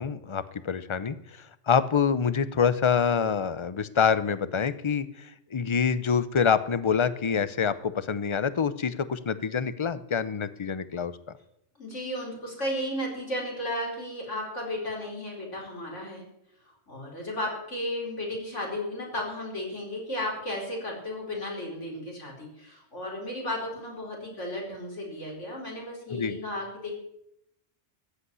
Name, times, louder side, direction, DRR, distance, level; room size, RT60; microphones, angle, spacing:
voice 1, 0.0-11.1 26.1-26.4, left 6 dB, 30° left, 15 dB, 0.6 m, -26 dB
voice 2, 11.8-16.2 16.7-27.0, left 1 dB, 75° left, -1 dB, 4.9 m, -34 dB
14.5 x 8.3 x 9.7 m, 0.80 s
omnidirectional pair, 1.2 m